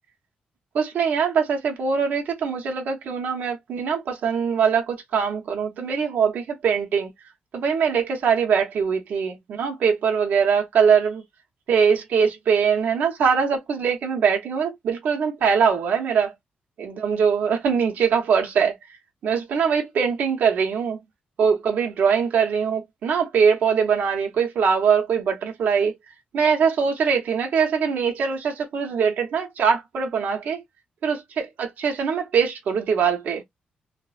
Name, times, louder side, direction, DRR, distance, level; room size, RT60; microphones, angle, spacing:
voice 1, 0.7-7.1 7.5-11.2 11.7-16.3 16.8-18.7 19.2-21.0 21.4-25.9 26.3-30.6 31.0-33.4, right 6 dB, 65° right, 0.7 m, -22 dB
3.2 x 2.0 x 2.4 m
wide cardioid pair, 155°, 3 cm